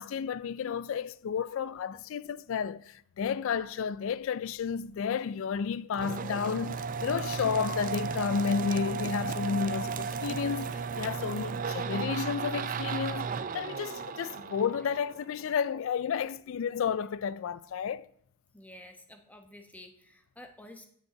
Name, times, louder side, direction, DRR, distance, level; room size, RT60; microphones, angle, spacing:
voice 1, 0.0-18.1, left 6 dB, 60° left, 0.3 m, -32 dB
sound 1, 5.9-15.5, right 5 dB, 40° right, 0.5 m, -34 dB
voice 2, 18.5-20.9, left 1 dB, 5° left, 1.0 m, -50 dB
9.1 x 5.4 x 7.9 m
head